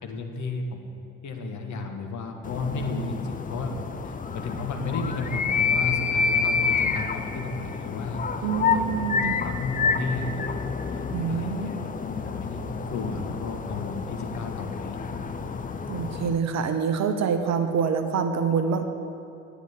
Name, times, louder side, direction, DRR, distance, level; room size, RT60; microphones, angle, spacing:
voice 1, 0.0-8.9 9.2-10.5 10.9-15.0, left 3 dB, 45° left, 3 dB, 1.5 m, -33 dB
sound 1, 2.4-16.4, left 5 dB, 20° left, 0.6 m, -29 dB
voice 2, 8.4-9.4 11.1-11.9 15.9-18.8, right 6 dB, 40° right, 7 dB, 0.9 m, -26 dB
10.0 x 9.0 x 7.5 m, 2.6 s
figure-of-eight pair, 55°, 41 cm